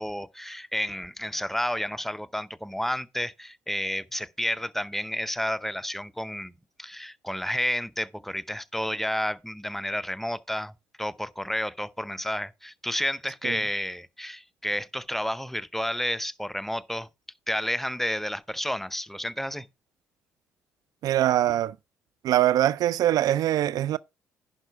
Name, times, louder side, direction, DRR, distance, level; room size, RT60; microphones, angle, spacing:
voice 1, 0.0-6.5 6.8-10.7 11.0-17.1 17.5-19.7, equal, 5° left, 0.6 m, -31 dB
voice 2, 21.0-21.7 22.2-24.0, right 12 dB, 60° right, 0.4 m, -23 dB
11.0 x 4.8 x 4.7 m
hypercardioid pair, 50°, 7 cm